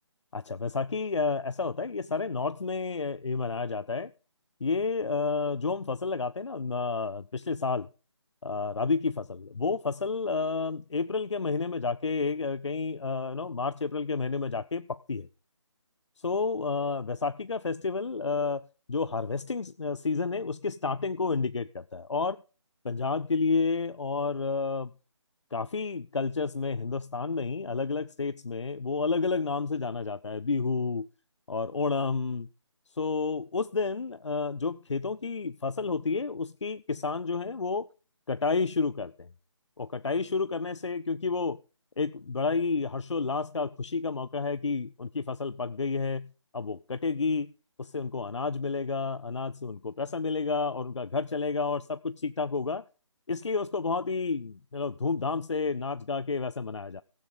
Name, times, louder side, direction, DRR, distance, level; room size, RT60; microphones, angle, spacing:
voice 1, 0.3-4.1 4.6-7.9 8.4-15.3 16.2-18.6 18.9-22.4 22.8-24.9 25.5-31.1 31.5-32.5 33.0-37.9 38.3-39.3 39.8-41.6 42.0-47.5 47.8-52.8 53.3-57.0, left 4 dB, 65° left, 0.5 m, -30 dB
15.5 x 9.8 x 3.9 m
figure-of-eight pair, 155°, 16 cm